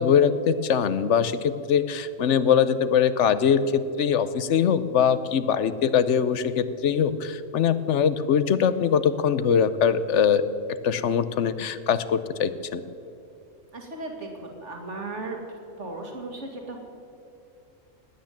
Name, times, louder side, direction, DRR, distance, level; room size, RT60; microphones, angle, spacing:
voice 1, 0.0-10.4 10.8-12.8, left 7 dB, 65° left, 14 dB, 1.0 m, -22 dB
voice 2, 13.7-15.4 15.8-16.8, right 2 dB, 60° right, 2 dB, 2.6 m, -36 dB
19.0 x 9.4 x 7.4 m, 2.7 s
omnidirectional pair, 1.4 m